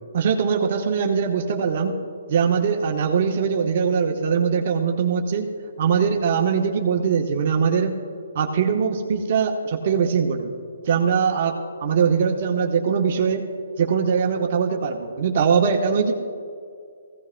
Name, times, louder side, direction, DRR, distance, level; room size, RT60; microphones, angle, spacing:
voice 1, 0.1-1.9 2.3-5.5 5.8-7.9 8.3-10.5 10.8-11.6 11.8-13.4 13.8-16.1, right 6 dB, 50° right, 1 dB, 1.0 m, -21 dB
19.0 x 16.0 x 2.2 m, 2.3 s
hypercardioid pair, 140°, 0 cm